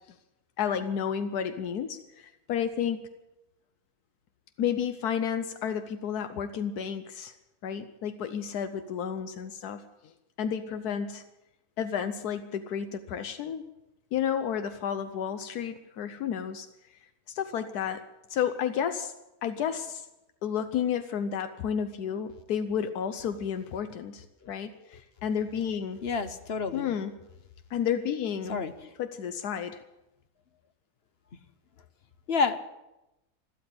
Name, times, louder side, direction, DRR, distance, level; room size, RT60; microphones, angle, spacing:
voice 1, 0.6-3.1 4.6-7.3 7.6-9.9 10.4-11.2 11.8-13.6 14.1-16.7 17.3-18.0 18.3-19.1 19.4-20.1 20.4-26.0 26.7-27.1 27.7-28.6 29.0-29.8, left 8 dB, 85° left, 10 dB, 1.3 m, -31 dB
voice 2, 26.0-26.9 28.5-28.9 32.3-32.6, left 5 dB, 50° left, 11 dB, 0.9 m, -29 dB
13.0 x 12.5 x 8.7 m, 0.94 s
omnidirectional pair, 1.6 m